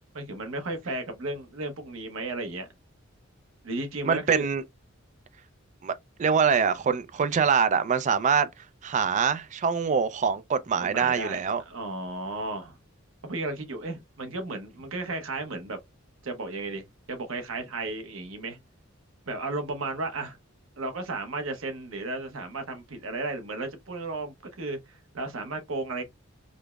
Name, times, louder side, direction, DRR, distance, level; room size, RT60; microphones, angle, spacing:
voice 1, 0.1-2.7 3.6-4.5 10.8-12.8 13.2-15.8 16.2-18.6 19.3-20.4 20.8-26.0, right 2 dB, 90° right, 0.8 m, -34 dB
voice 2, 4.0-4.6 5.8-8.5 8.8-11.6, right 6 dB, 35° right, 0.4 m, -24 dB
5.0 x 2.0 x 2.3 m
head